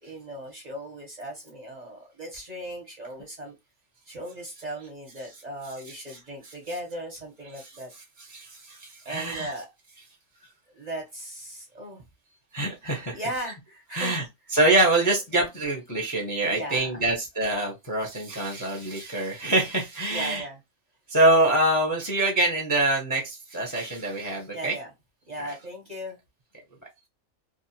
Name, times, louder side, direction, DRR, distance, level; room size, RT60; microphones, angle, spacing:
voice 1, 0.0-3.5 4.1-7.9 9.0-9.7 10.7-12.0 13.1-14.2 16.5-17.0 20.1-20.6 24.5-24.9 25.3-26.2, right 1 dB, 35° right, 0.8 m, -37 dB
voice 2, 8.3-9.5 12.5-13.2 13.9-14.2 14.5-20.4 21.1-24.7 25.4-25.5, right 2 dB, 20° left, 0.6 m, -25 dB
2.6 x 2.3 x 2.7 m
omnidirectional pair, 1.4 m